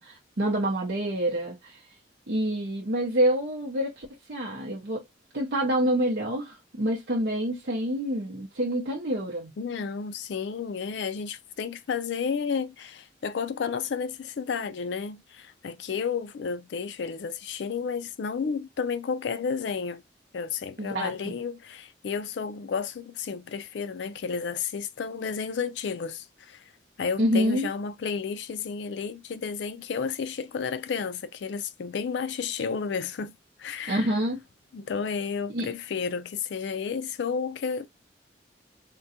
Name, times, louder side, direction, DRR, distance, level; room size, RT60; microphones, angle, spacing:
voice 1, 0.0-1.9 2.3-5.0 5.3-9.5 20.8-21.3 27.2-27.7 33.9-34.4 35.5-35.7, right 1 dB, 60° right, 0.7 m, -27 dB
voice 2, 9.6-20.0 20.3-26.6 27.0-34.1 34.7-37.9, left 6 dB, 75° left, 0.4 m, -32 dB
3.7 x 2.2 x 2.7 m
head